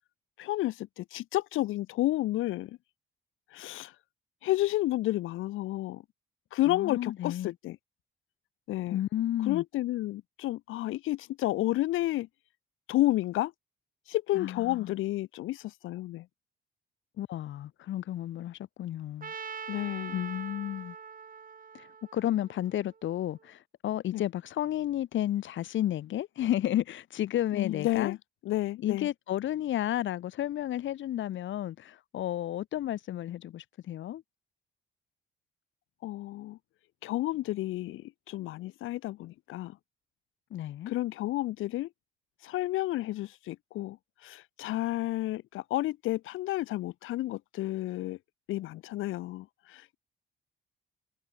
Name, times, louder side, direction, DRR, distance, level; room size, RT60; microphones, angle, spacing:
voice 1, 0.4-2.8 3.5-3.9 4.4-6.0 6.5-7.8 8.7-9.0 9.5-12.3 12.9-13.5 14.1-16.3 19.7-20.2 24.1-24.2 27.5-28.2 28.5-29.1 36.0-36.6 37.0-39.8 40.9-41.9 42.4-44.0 44.2-48.2 48.5-50.0, left 16 dB, 90° left, 1.7 m, -31 dB
voice 2, 6.7-7.5 8.9-9.6 14.3-14.9 17.2-19.3 20.1-21.0 21.7-28.2 28.8-34.2 40.5-40.9, left 12 dB, 75° left, 1.8 m, -32 dB
Trumpet, 19.2-23.3, right 6 dB, 45° right, 4.3 m, -43 dB
cardioid pair, 90°, 20 cm